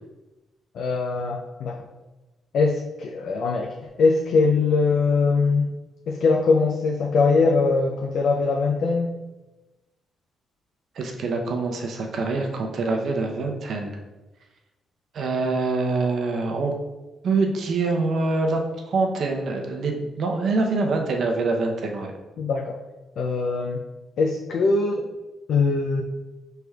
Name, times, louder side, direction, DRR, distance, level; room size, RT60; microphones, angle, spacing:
voice 1, 0.7-1.9 2.5-5.7 6.1-9.1 22.4-22.8 23.2-23.8 24.2-25.1 25.5-26.0, left 4 dB, 65° left, 1 dB, 0.4 m, -22 dB
voice 2, 11.0-14.0 15.1-16.8 17.2-18.6 18.9-22.1, right 3 dB, 60° right, 3 dB, 0.6 m, -25 dB
5.8 x 3.3 x 2.3 m, 1.1 s
cardioid pair, 115°, 0 cm